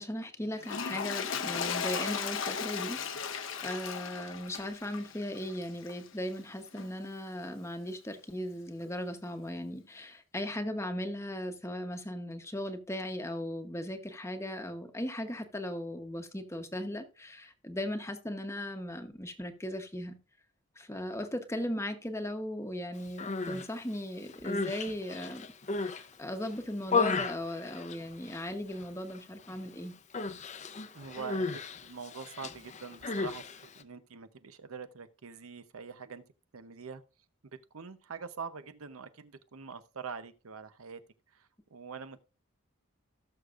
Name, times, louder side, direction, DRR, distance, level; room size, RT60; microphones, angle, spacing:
voice 1, 0.0-20.2 20.8-25.5 25.8-29.9, left 1 dB, 15° left, 1.0 m, -37 dB
Toilet flush, 0.6-6.1 6.7-6.9, left 6 dB, 60° left, 0.8 m, -36 dB
Human voice, 23.1-23.7 24.2-26.1 26.5-28.5 28.7-29.2 29.4-29.7 30.1-33.8, left 4 dB, 35° left, 0.6 m, -34 dB
voice 2, 30.9-36.2 36.5-37.0 37.7-41.0 41.3-42.2, right 5 dB, 80° right, 0.8 m, -44 dB
17.5 x 6.6 x 2.5 m
head